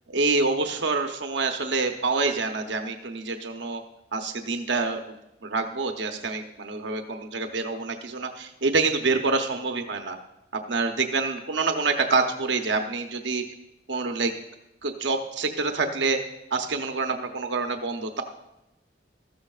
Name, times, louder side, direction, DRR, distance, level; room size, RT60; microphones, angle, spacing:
voice 1, 0.1-3.8 4.1-5.2 5.4-10.2 10.7-13.4 13.9-14.3 14.8-16.2 16.5-18.2, right 3 dB, 90° right, 5 dB, 0.9 m, -26 dB
14.0 x 13.0 x 2.4 m, 0.87 s
head